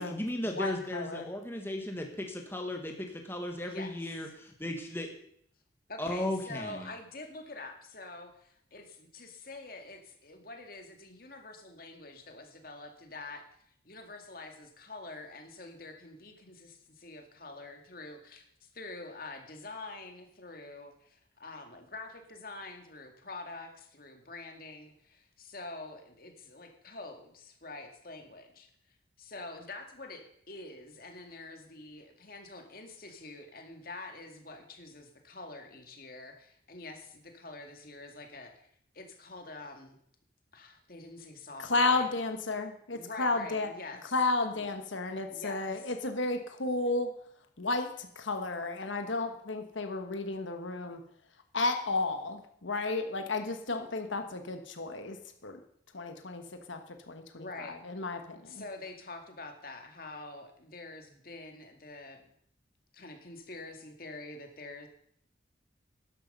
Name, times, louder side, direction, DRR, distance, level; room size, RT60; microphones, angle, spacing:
voice 1, 0.0-4.3 4.6-5.1 6.0-6.9, left 1 dB, 10° left, 3 dB, 1.5 m, -35 dB
voice 2, 0.5-1.3 41.6-43.7 44.1-47.1 47.6-51.0 51.5-55.2 55.4-55.6 55.9-56.8 57.1-58.6, left 3 dB, 85° left, 6 dB, 1.4 m, -32 dB
voice 3, 3.6-4.2 5.9-13.4 13.8-28.7 29.2-38.7 38.9-40.0 40.5-42.1 42.9-44.1 44.6-44.7 45.3-45.9 57.3-57.8 58.4-62.2 62.9-64.9, left 2 dB, 50° left, 4 dB, 2.1 m, -46 dB
12.0 x 11.0 x 5.5 m, 0.68 s
head